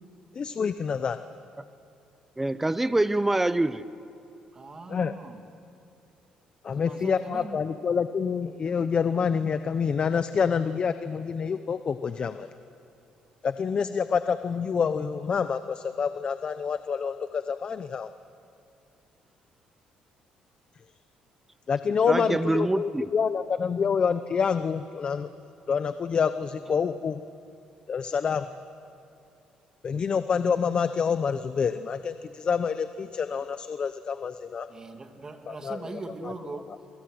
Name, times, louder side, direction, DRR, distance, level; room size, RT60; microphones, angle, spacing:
voice 1, 0.3-1.2 4.9-5.2 6.6-12.5 13.4-18.1 21.7-25.3 25.7-27.2 27.9-28.5 29.8-34.7 35.5-36.3 36.7-36.8, left 6 dB, 40° left, 11 dB, 0.8 m, -27 dB
voice 2, 2.4-3.8 22.1-23.1, right 2 dB, 10° right, 15 dB, 0.8 m, -25 dB
voice 3, 4.5-5.5 6.7-7.6 34.7-36.7, right 3 dB, 25° right, 5 dB, 2.5 m, -40 dB
28.5 x 23.5 x 7.9 m, 2.7 s
cardioid pair, 105°, 3 cm